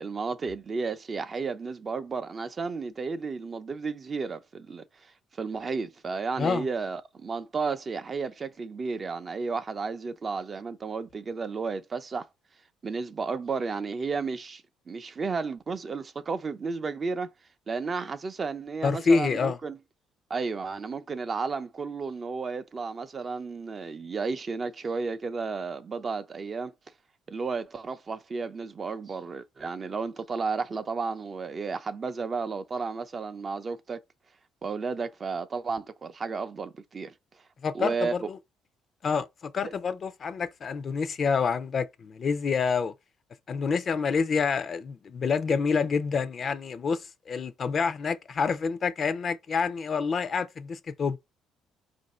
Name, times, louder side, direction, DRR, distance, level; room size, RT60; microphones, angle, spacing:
voice 1, 0.0-4.8 5.4-12.2 12.8-17.3 17.7-19.8 20.3-26.7 27.3-34.0 34.6-37.1 37.7-38.1 39.6-39.7, right 4 dB, 35° right, 0.5 m, -33 dB
voice 2, 18.8-19.6 37.6-38.4 39.0-42.9 43.5-51.2, left 5 dB, 45° left, 0.5 m, -27 dB
4.6 x 2.6 x 4.2 m
cardioid pair, 95°, 0 cm